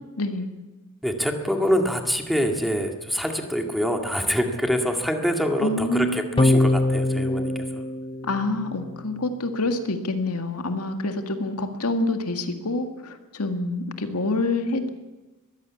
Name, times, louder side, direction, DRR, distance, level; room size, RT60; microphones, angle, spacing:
voice 1, 0.2-0.5 5.6-6.4 8.2-14.9, left 2 dB, 80° left, 6 dB, 2.0 m, -27 dB
voice 2, 1.0-7.8, equal, ahead, 3 dB, 2.0 m, -25 dB
sound 1, 6.4-9.0, left 1 dB, 25° left, 0.7 m, -23 dB
21.5 x 15.5 x 8.5 m, 1.1 s
head